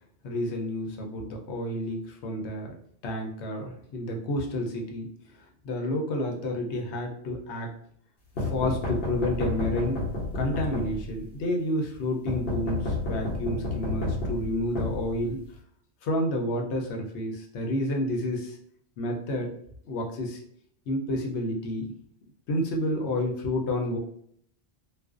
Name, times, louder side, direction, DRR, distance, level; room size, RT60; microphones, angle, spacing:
voice 1, 0.2-2.7 3.0-5.1 5.6-7.7 8.4-10.0 10.3-15.4 16.0-18.6 19.0-19.5 19.8-20.4 20.9-21.9 22.5-24.0, left 1 dB, 85° left, 1 dB, 0.9 m, -30 dB
sound 1, 8.4-11.3 12.3-15.6, left 3 dB, 60° left, 0.9 m, -31 dB
2.4 x 2.1 x 2.3 m, 0.65 s
omnidirectional pair, 1.1 m